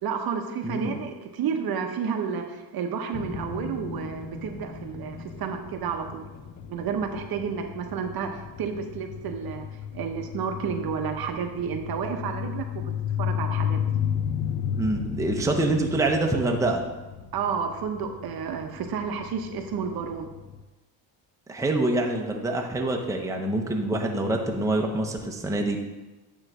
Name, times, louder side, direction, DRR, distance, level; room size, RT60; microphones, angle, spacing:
voice 1, 0.0-6.3 6.7-9.7 9.9-12.9 13.2-13.8 17.3-20.3, right 6 dB, 55° right, 5 dB, 0.9 m, -31 dB
voice 2, 0.6-1.0 14.8-16.8 21.5-25.8, right 2 dB, 5° right, 2 dB, 0.7 m, -26 dB
sound 1, 3.1-20.6, left 8 dB, 40° left, 0.7 m, -34 dB
9.0 x 3.2 x 6.0 m, 1.1 s
cardioid pair, 110°, 44 cm